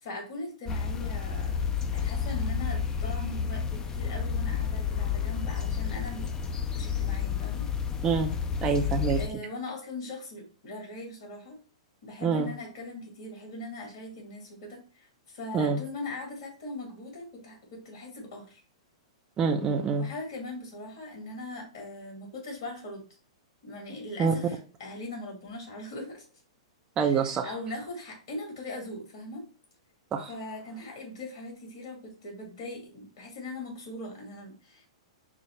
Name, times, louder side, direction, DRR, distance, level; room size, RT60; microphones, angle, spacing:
voice 1, 0.0-1.6 1.9-6.3 6.7-7.7 9.2-11.6 12.0-15.1 15.3-18.6 20.0-23.0 23.6-26.2 27.1-29.4 30.3-34.9, left 2 dB, 60° left, 1 dB, 2.1 m, -40 dB
sound 1, 0.7-9.3, left 7 dB, 20° left, 0.5 m, -30 dB
voice 2, 8.6-9.2 12.2-12.5 15.5-15.8 19.4-20.1 24.2-24.3 27.0-27.5 30.1-30.3, right 5 dB, 25° right, 4 dB, 0.5 m, -26 dB
4.8 x 2.0 x 4.5 m, 0.36 s
hypercardioid pair, 115°, 3 cm